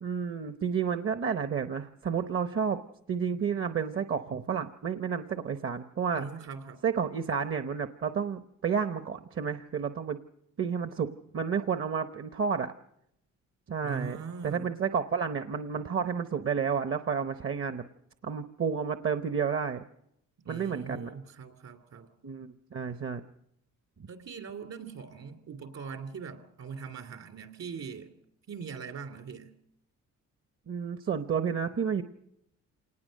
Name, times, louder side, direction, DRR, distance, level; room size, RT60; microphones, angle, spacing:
voice 1, 0.0-2.8 3.1-6.3 6.8-10.2 10.6-11.1 11.3-12.7 13.7-14.2 14.4-17.8 18.2-19.8 20.5-21.1 22.2-23.2 30.7-32.0, right 6 dB, 45° right, 10 dB, 0.9 m, -31 dB
voice 2, 6.1-6.8 13.8-14.7 20.4-22.1 24.1-28.1 28.5-29.5, right 5 dB, 60° right, 8 dB, 2.9 m, -41 dB
26.5 x 19.5 x 6.5 m, 0.77 s
cardioid pair, 90°, 30 cm